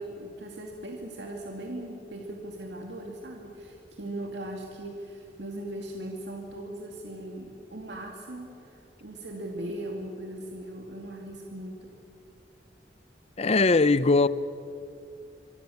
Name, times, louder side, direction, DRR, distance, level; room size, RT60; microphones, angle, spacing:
voice 1, 0.0-11.9, right 1 dB, 75° right, 2.4 m, -39 dB
voice 2, 13.4-14.3, left 3 dB, 35° left, 0.7 m, -20 dB
25.5 x 24.5 x 7.1 m
head